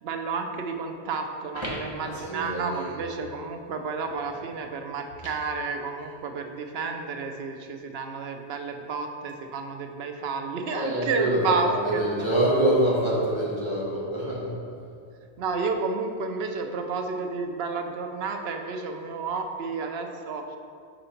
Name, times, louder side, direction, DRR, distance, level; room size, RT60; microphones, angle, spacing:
voice 1, 0.0-12.3 15.4-20.6, right 4 dB, 75° right, 5 dB, 0.8 m, -31 dB
voice 2, 1.5-2.9 10.7-14.6, right 1 dB, 30° left, -7 dB, 1.1 m, -26 dB
5.0 x 3.9 x 5.6 m, 2.3 s
omnidirectional pair, 1.1 m